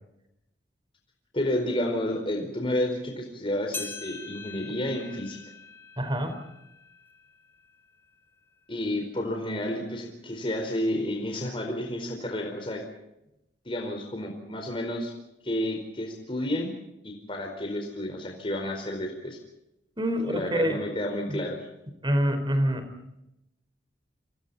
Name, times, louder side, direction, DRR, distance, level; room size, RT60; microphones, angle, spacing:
voice 1, 1.3-5.4 8.7-12.8 13.6-15.1 15.4-16.7 17.0-19.4 20.3-21.6, left 1 dB, 30° left, 3 dB, 4.5 m, -30 dB
sound 1, 3.7-8.4 8.9-9.0 9.8-9.9 10.8-10.9, left 4 dB, 15° left, 5.8 m, -43 dB
voice 2, 6.0-6.4 20.0-20.8 21.3-21.4 22.0-22.9, equal, 25° right, 9 dB, 4.6 m, -26 dB
29.5 x 26.5 x 4.2 m, 0.88 s
head